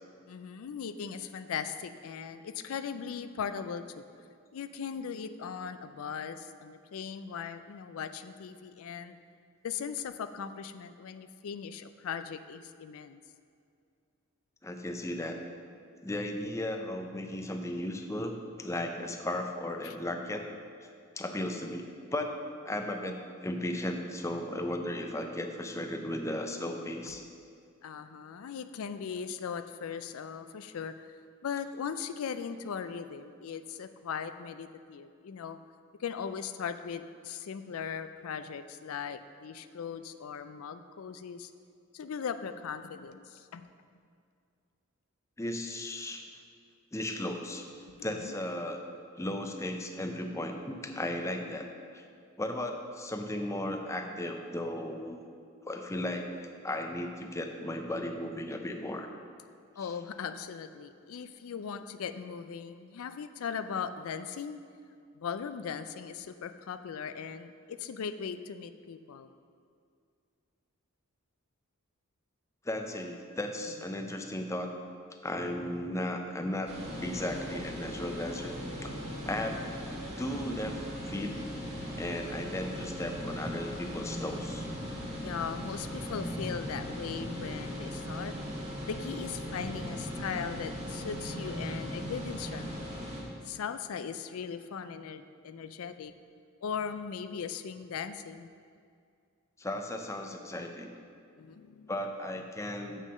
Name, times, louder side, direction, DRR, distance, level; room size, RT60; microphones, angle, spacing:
voice 1, 0.3-3.9 4.5-9.2 9.6-13.2 19.8-19.9 27.8-31.2 31.4-35.6 36.0-41.5 41.9-43.7 47.9-48.3 59.8-64.6 65.1-69.3 79.1-79.3 85.2-88.3 88.8-92.9 93.4-96.1 96.6-98.5 101.4-101.9, left 6 dB, 75° left, 11 dB, 0.4 m, -39 dB
voice 2, 14.6-15.4 16.0-20.4 21.2-23.2 23.4-27.2 45.4-46.2 46.9-47.7 48.0-48.8 49.2-51.7 51.9-52.0 52.4-55.2 55.6-59.1 72.6-74.7 75.2-76.7 77.0-78.9 79.3-79.8 80.2-81.3 82.0-84.7 99.6-100.9 101.9-103.1, left 1 dB, 15° left, 4 dB, 0.5 m, -35 dB
sound 1, 76.7-93.2, equal, 30° right, 1.7 m, -38 dB
7.4 x 6.6 x 6.4 m, 2.3 s
head